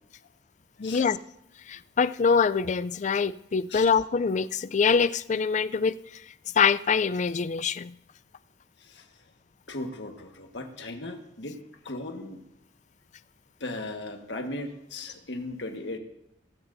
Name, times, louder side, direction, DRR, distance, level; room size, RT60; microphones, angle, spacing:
voice 1, 0.8-1.2 1.7-6.2 6.5-7.9, left 5 dB, 40° left, 0.4 m, -24 dB
voice 2, 9.7-11.6 11.8-12.4 13.6-16.0, left 2 dB, 70° left, 1.5 m, -37 dB
16.5 x 16.5 x 2.7 m
head